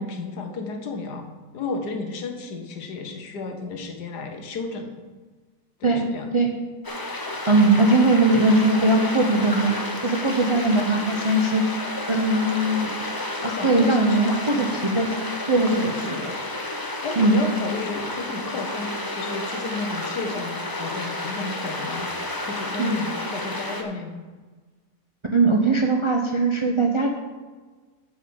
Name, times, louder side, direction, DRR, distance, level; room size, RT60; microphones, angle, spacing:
voice 1, 0.0-5.0 5.8-6.4 13.3-14.7 15.7-24.2, left 3 dB, 85° left, 5 dB, 1.7 m, -33 dB
sound 1, 6.8-23.8, left 2 dB, 20° left, 0.6 m, -31 dB
voice 2, 7.5-9.7 10.0-11.6 12.1-13.0 13.4-15.1 15.5-15.8 17.2-17.3 22.8-23.0 25.3-27.1, right 2 dB, 30° right, 2 dB, 0.5 m, -20 dB
8.3 x 5.4 x 6.9 m, 1.4 s
omnidirectional pair, 1.7 m